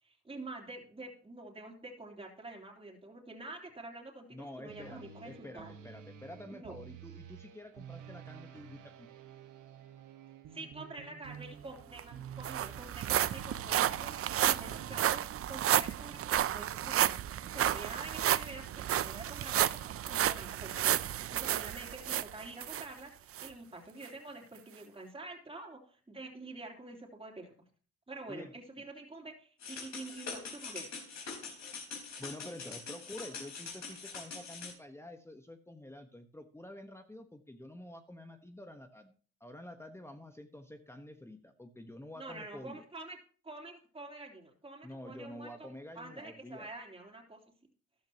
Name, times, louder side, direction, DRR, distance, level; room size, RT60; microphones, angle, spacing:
voice 1, 0.0-5.8 6.5-6.8 10.5-14.1 14.4-17.1 17.4-19.7 20.1-27.5 28.1-30.9 42.2-43.2 43.4-45.7 45.9-47.4, right 2 dB, 20° right, -1 dB, 3.3 m, -47 dB
voice 2, 4.3-9.1 28.3-28.5 32.2-39.1 39.4-42.8 44.8-46.7, left 1 dB, 10° left, 6 dB, 1.2 m, -48 dB
sound 1, 4.7-15.1, right 7 dB, 75° right, 1.4 m, -51 dB
sound 2, 11.6-11.7 12.0-22.9 23.3-23.5 24.0-24.1, right 11 dB, 50° right, 0.5 m, -32 dB
sound 3, 29.6-34.7, left 4 dB, 60° left, 4.5 m, -44 dB
13.5 x 11.5 x 2.9 m, 0.42 s
cardioid pair, 90°, 30 cm